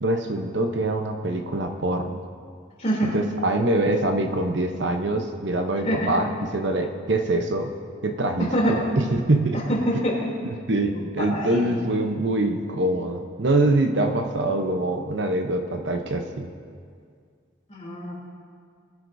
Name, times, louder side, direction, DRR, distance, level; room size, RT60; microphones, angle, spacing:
voice 1, 0.0-2.2 3.0-7.7 8.0-9.6 10.7-16.5, right 2 dB, 70° right, 5 dB, 0.8 m, -24 dB
voice 2, 2.8-3.1 5.8-6.1 8.5-8.8 9.5-10.2 10.9-11.7 17.7-18.1, equal, 35° left, -5 dB, 3.0 m, -25 dB
20.5 x 9.5 x 2.7 m, 2.1 s
head